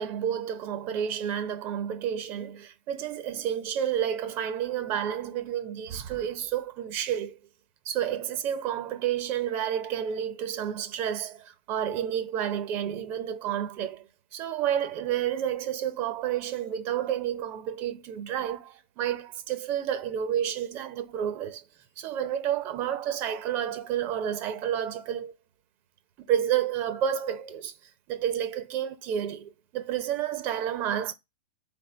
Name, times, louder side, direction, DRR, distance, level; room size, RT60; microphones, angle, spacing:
voice 1, 0.0-7.4 7.8-21.6 22.0-25.3 26.2-31.1, right 9 dB, 40° right, 0.7 m, -30 dB
3.8 x 3.5 x 3.8 m
hypercardioid pair, 125°, 5 cm